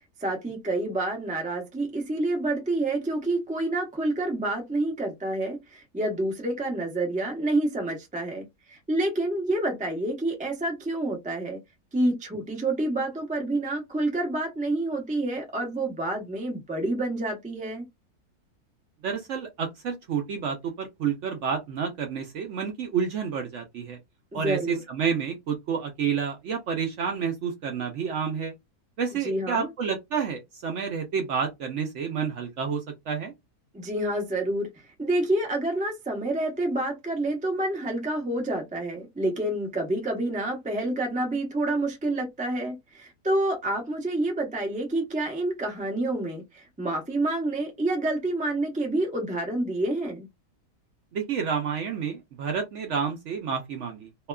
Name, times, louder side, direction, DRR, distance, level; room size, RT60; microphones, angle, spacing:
voice 1, 0.2-11.6 11.9-17.8 24.3-24.8 29.2-29.7 33.7-50.3, right 2 dB, 15° right, 0.3 m, -28 dB
voice 2, 19.0-24.0 24.3-28.5 29.0-33.3 51.1-54.3, right 6 dB, 65° right, 0.7 m, -29 dB
2.7 x 2.3 x 2.2 m
omnidirectional pair, 1.6 m